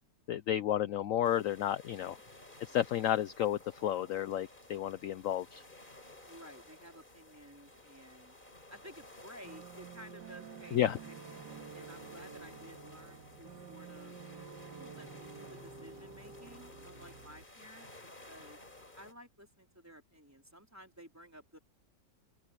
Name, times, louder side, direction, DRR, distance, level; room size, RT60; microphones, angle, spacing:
voice 1, 0.3-2.2 2.7-5.6 10.7-11.0, left 11 dB, 70° left, 0.8 m, -32 dB
sound 1, 1.2-19.1, left 2 dB, 25° left, 4.2 m, -55 dB
voice 2, 6.2-8.4 8.7-11.1 11.7-14.2 14.8-17.9 18.2-18.6 19.0-21.6, equal, 10° right, 4.0 m, -54 dB
sound 2, 9.4-17.4, right 5 dB, 75° right, 2.5 m, -50 dB
omnidirectional pair, 1.9 m